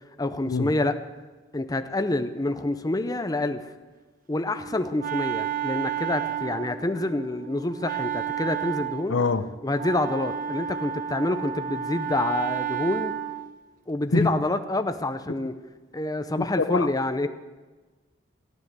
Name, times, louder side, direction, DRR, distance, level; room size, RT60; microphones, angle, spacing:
voice 1, 0.2-0.9 1.5-3.7 4.3-9.2 9.6-13.1 13.9-15.6 15.9-17.3, left 2 dB, 20° left, 9 dB, 0.6 m, -27 dB
Wind instrument woodwind instrument, 4.5-13.6, right 9 dB, 45° right, 0.6 m, -32 dB
voice 2, 9.1-9.5 14.1-14.3 16.6-16.9, left 4 dB, 75° left, 13 dB, 0.7 m, -23 dB
14.5 x 9.6 x 7.8 m, 1.3 s
head